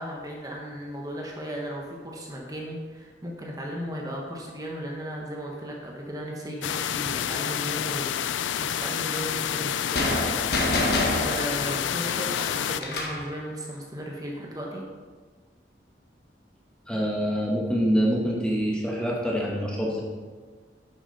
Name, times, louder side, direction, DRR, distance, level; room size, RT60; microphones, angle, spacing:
voice 1, 0.0-14.8, equal, 20° right, -1 dB, 1.3 m, -36 dB
sound 1, 6.6-12.8, left 9 dB, 85° left, 0.4 m, -29 dB
sound 2, 9.9-13.3, left 1 dB, 55° left, 1.3 m, -28 dB
voice 2, 16.9-20.0, equal, 5° left, -3 dB, 1.3 m, -25 dB
10.5 x 7.2 x 4.2 m, 1.5 s
head